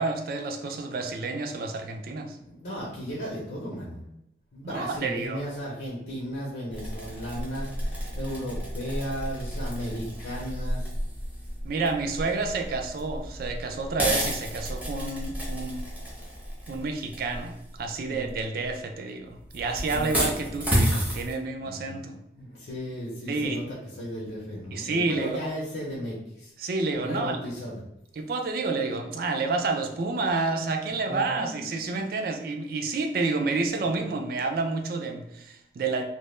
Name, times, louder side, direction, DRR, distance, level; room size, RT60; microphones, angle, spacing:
voice 1, 0.0-2.4 4.6-5.4 11.6-15.9 16.7-22.2 23.3-23.6 24.7-25.4 26.6-27.4 28.2-36.0, right 3 dB, 55° right, 4 dB, 0.3 m, -29 dB
voice 2, 2.3-4.0 4.5-10.9 18.0-18.4 19.9-20.3 21.6-22.0 22.4-26.5 27.0-27.8 30.9-32.1, equal, 70° left, -5 dB, 0.5 m, -35 dB
sound 1, 6.7-18.7 19.3-21.3, equal, 10° right, 0.6 m, -32 dB
2.1 x 2.0 x 3.0 m, 0.82 s
head